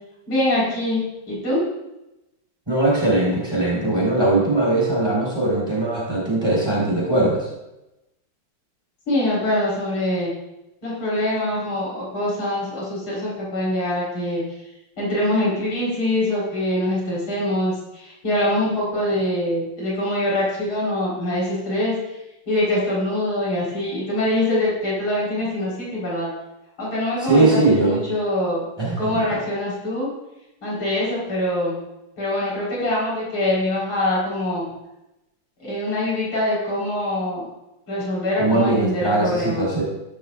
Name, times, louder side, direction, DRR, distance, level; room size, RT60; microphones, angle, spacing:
voice 1, 0.3-1.6 9.1-10.3 10.8-14.6 15.0-22.2 22.5-26.3 26.8-28.6 29.0-30.1 30.6-31.8 32.2-34.7 35.6-37.5 37.9-39.7, left 1 dB, 80° left, -6 dB, 5.3 m, -24 dB
voice 2, 2.7-7.5 27.2-28.0 28.8-29.2 38.4-39.8, right 2 dB, 10° right, -4 dB, 4.4 m, -20 dB
15.0 x 12.0 x 2.5 m, 0.93 s
omnidirectional pair, 2.2 m